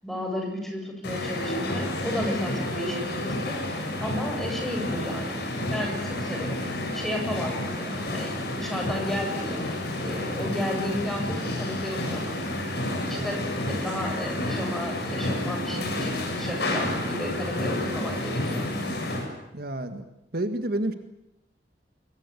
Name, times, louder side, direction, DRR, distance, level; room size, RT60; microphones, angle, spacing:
voice 1, 0.0-3.6 4.0-5.4 5.7-6.6 6.9-9.6 10.0-12.4 12.9-18.7, left 1 dB, ahead, 1 dB, 7.7 m, -33 dB
sound 1, 1.0-19.3, left 1 dB, 65° left, 7.4 m, -30 dB
voice 2, 19.5-20.0 20.3-20.9, right 1 dB, 60° right, 8 dB, 1.8 m, -29 dB
25.5 x 23.0 x 8.3 m, 0.87 s
head